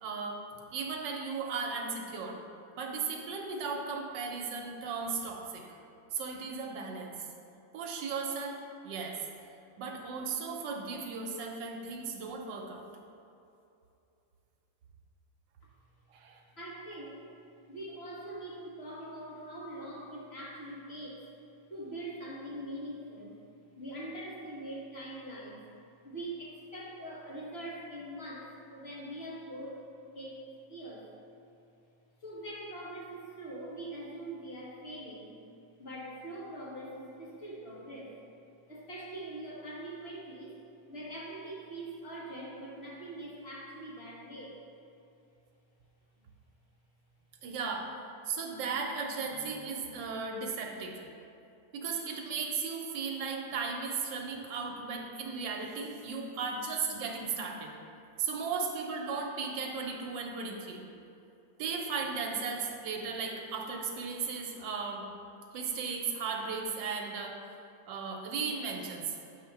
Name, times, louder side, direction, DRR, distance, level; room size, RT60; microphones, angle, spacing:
voice 1, 0.0-0.4 0.7-2.4 2.8-5.6 6.1-7.1 7.7-8.6 8.8-9.2 9.8-12.8 16.1-16.4 47.4-47.9 48.3-51.0 51.7-57.7 58.2-60.8 61.6-65.0 65.5-67.4 67.9-69.2, right 5 dB, 75° right, 0 dB, 1.4 m, -36 dB
voice 2, 16.6-17.3 17.7-21.2 21.7-23.4 23.8-25.7 26.0-29.8 30.1-30.4 30.7-31.1 32.2-35.4 35.8-38.1 38.7-40.6 40.9-44.6, right 1 dB, 40° left, -5 dB, 1.2 m, -43 dB
8.2 x 2.9 x 5.8 m, 2.7 s
omnidirectional pair, 2.0 m